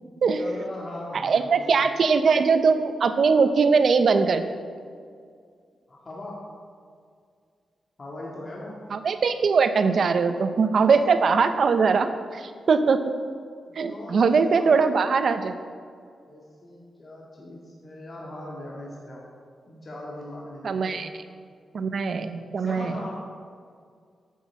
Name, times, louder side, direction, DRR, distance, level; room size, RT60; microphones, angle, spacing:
voice 1, 0.4-1.9 5.9-6.5 8.0-8.8 13.7-14.9 16.3-19.3 19.7-21.1 22.6-23.1, left 1 dB, 40° left, -4 dB, 1.9 m, -39 dB
voice 2, 1.2-4.4 8.9-13.1 13.8-15.5 20.6-21.1 21.7-22.9, right 5 dB, 60° right, 9 dB, 0.7 m, -21 dB
9.3 x 6.1 x 7.4 m, 2.2 s
cardioid pair, 85°, 0 cm